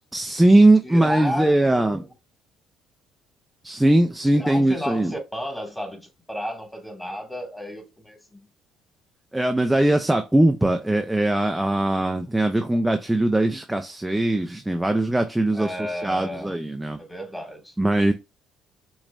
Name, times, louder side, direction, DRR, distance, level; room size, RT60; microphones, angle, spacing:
voice 1, 0.1-2.0 3.6-5.1 9.3-17.0 17.8-18.1, right 1 dB, 10° right, 0.6 m, -20 dB
voice 2, 0.8-2.1 4.3-8.4 15.5-16.6 17.0-17.7, equal, 5° left, 2.1 m, -33 dB
6.0 x 3.2 x 2.5 m
hypercardioid pair, 55°, 0 cm